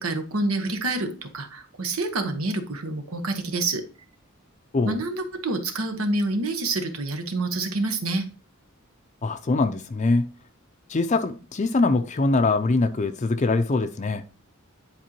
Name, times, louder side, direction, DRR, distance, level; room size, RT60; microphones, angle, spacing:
voice 1, 0.0-3.8 4.8-8.3, right 2 dB, 85° right, 1.2 m, -27 dB
voice 2, 9.2-10.2 10.9-14.2, left 3 dB, 35° left, 0.5 m, -23 dB
10.5 x 4.4 x 2.9 m
head